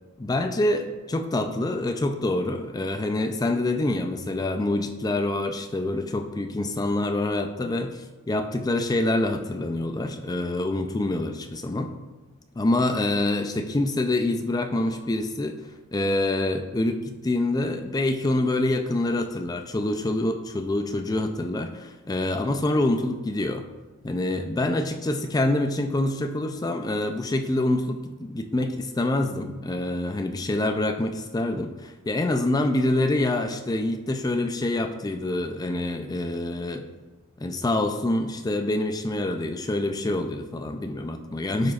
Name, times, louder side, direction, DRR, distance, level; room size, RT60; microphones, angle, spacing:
voice 1, 0.2-11.9 12.6-15.6 15.9-23.7 24.0-36.9 37.4-41.7, left 2 dB, 20° left, 6 dB, 0.4 m, -26 dB
9.1 x 4.8 x 2.4 m, 1.2 s
head